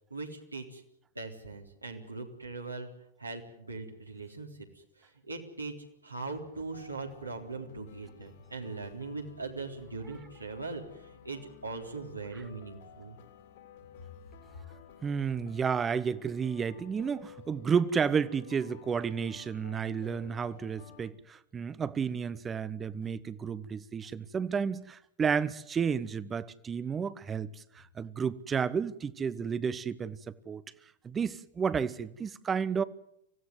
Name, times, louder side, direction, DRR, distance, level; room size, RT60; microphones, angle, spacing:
voice 1, 0.1-0.8 1.2-2.9 3.2-4.5 4.7-5.7 6.0-13.2, right 3 dB, 85° right, 3.7 m, -40 dB
sound 1, 6.5-21.1, left 9 dB, 55° left, 4.2 m, -54 dB
voice 2, 15.0-30.6 31.0-32.8, right 6 dB, 20° right, 1.1 m, -32 dB
25.0 x 16.5 x 9.6 m
figure-of-eight pair, 90°, 0 cm